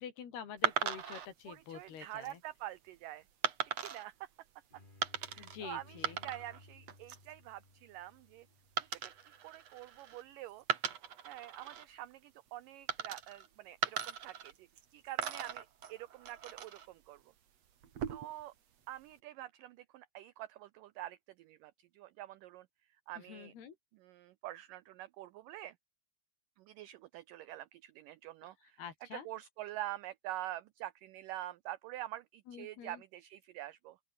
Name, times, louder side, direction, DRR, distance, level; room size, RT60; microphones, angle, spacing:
voice 1, 0.0-2.4 5.4-6.2 23.3-23.8 28.8-29.3 32.5-33.0, left 8 dB, 75° left, 5.2 m, -47 dB
sound 1, 0.6-1.3 2.0-2.3 3.4-4.0 5.0-5.6 5.9-6.6 6.9-7.3 8.8-10.2 10.6-11.9 12.9-13.5 13.8-14.9 15.2-16.9 17.8-18.4, right 8 dB, 50° right, 2.6 m, -38 dB
voice 2, 1.5-3.3 3.8-4.3 5.2-8.5 8.8-9.1 9.4-10.6 11.3-14.7 14.9-17.2 18.1-18.5 18.9-22.7 23.1-23.5 23.9-25.8 26.6-28.8 29.1-34.0, right 15 dB, 85° right, 1.9 m, -46 dB
sound 2, 4.7-10.2, left 2 dB, 15° left, 3.3 m, -61 dB
open air
omnidirectional pair, 4.6 m